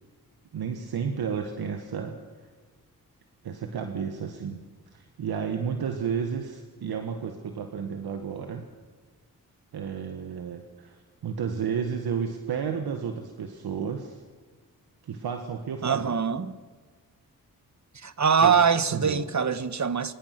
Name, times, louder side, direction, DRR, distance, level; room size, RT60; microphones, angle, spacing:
voice 1, 0.5-2.2 3.4-4.6 4.9-8.7 9.7-14.2 15.0-16.2 18.4-18.6 18.9-19.2, right 7 dB, 80° right, 1.8 m, -32 dB
voice 2, 15.8-16.5 17.9-20.1, right 6 dB, 50° right, 1.5 m, -23 dB
26.0 x 23.0 x 6.1 m
cardioid pair, 50°, 37 cm